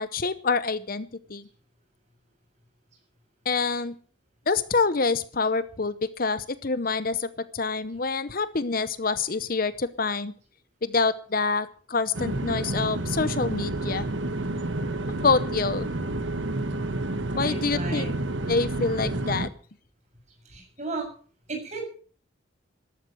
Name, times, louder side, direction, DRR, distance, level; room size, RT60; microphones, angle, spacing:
voice 1, 0.0-1.5 3.4-3.9 4.5-10.3 10.8-14.0 15.2-15.9 17.4-18.0 18.5-19.5, left 4 dB, 45° left, 14 dB, 0.8 m, -26 dB
sound 1, 12.1-19.5, right 2 dB, 65° right, 1.2 m, -29 dB
voice 2, 17.3-18.1 20.5-21.1 21.5-21.9, right 3 dB, 35° right, 1 dB, 7.2 m, -34 dB
14.0 x 12.5 x 6.6 m, 0.44 s
head